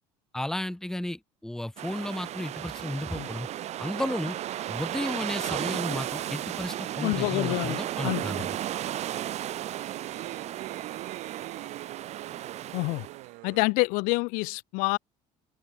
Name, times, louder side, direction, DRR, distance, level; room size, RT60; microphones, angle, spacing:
voice 1, 0.3-3.5 3.8-4.4 4.7-8.5, left 1 dB, 5° left, 1.1 m, -33 dB
sound 1, 1.8-13.3, right 12 dB, 55° right, 1.8 m, -34 dB
sound 2, 3.9-13.7, right 26 dB, 80° right, 1.4 m, -45 dB
voice 2, 7.0-8.2 12.7-13.1 13.4-15.0, left 29 dB, 80° left, 0.9 m, -27 dB
open air
cardioid pair, 115°, 14 cm